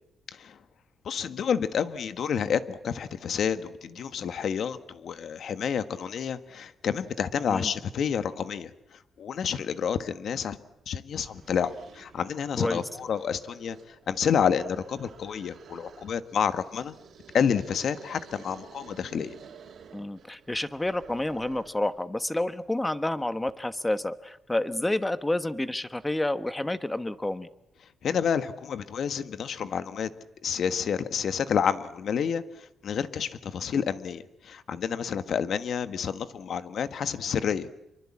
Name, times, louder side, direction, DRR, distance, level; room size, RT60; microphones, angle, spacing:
voice 1, 1.0-8.7 9.2-10.6 10.9-16.9 17.3-19.3 28.0-30.1 30.4-37.7, left 7 dB, 65° left, 11 dB, 1.4 m, -29 dB
sound 1, 11.1-21.9, right 6 dB, 65° right, 3.2 m, -51 dB
voice 2, 19.9-27.5, left 1 dB, 10° left, 12 dB, 1.1 m, -29 dB
26.0 x 24.0 x 8.6 m, 0.84 s
cardioid pair, 120°, 0 cm